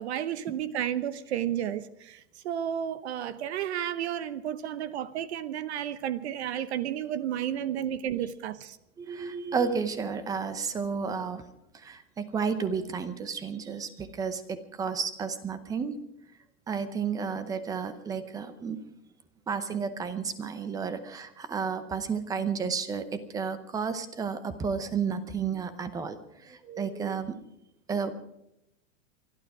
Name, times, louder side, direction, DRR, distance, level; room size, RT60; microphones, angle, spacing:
voice 1, 0.0-2.2 2.4-8.8, right 10 dB, 60° right, 0.9 m, -32 dB
voice 2, 9.0-11.4 11.7-15.9 16.7-18.8 19.5-27.4 27.9-28.1, right 6 dB, 10° right, 0.7 m, -32 dB
24.0 x 12.0 x 4.8 m
supercardioid pair, 160°, 37 cm